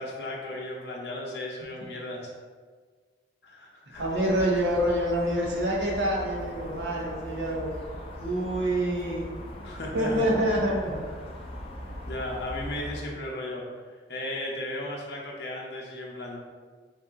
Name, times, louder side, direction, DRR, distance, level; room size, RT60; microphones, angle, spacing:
voice 1, 0.0-2.3 3.4-4.0 4.5-4.6 9.4-10.2 11.2-11.3 12.1-13.6 14.1-16.4, left 1 dB, 60° left, -2 dB, 0.8 m, -35 dB
sound 1, 3.9-13.0, left 1 dB, 30° left, 0.6 m, -40 dB
voice 2, 4.0-7.7 8.2-9.3 9.9-11.0, right 1 dB, 75° right, -3 dB, 0.9 m, -26 dB
4.0 x 2.8 x 3.6 m, 1.5 s
head